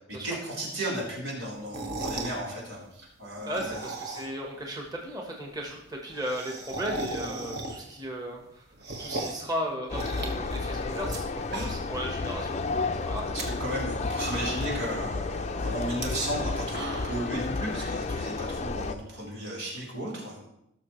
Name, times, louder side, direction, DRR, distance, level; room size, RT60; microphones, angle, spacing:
voice 1, 0.2-3.8 13.3-20.5, right 1 dB, 85° right, -5 dB, 4.0 m, -34 dB
sound 1, 1.6-2.4 3.4-4.5 4.8-4.9 5.1-5.2 5.4-5.5 5.8-8.0 8.4-9.5 9.9-11.2 11.4-12.0 12.4-12.5 13.2-13.4 13.9-14.0 14.2-14.8 15.9-16.0 16.5-17.3, right 2 dB, 50° right, 1.4 m, -36 dB
voice 2, 3.4-8.6 9.0-13.3, equal, 20° right, 0 dB, 1.3 m, -36 dB
sound 2, 9.9-18.9, left 3 dB, 30° left, 0.5 m, -32 dB
17.5 x 6.6 x 3.2 m, 0.80 s
head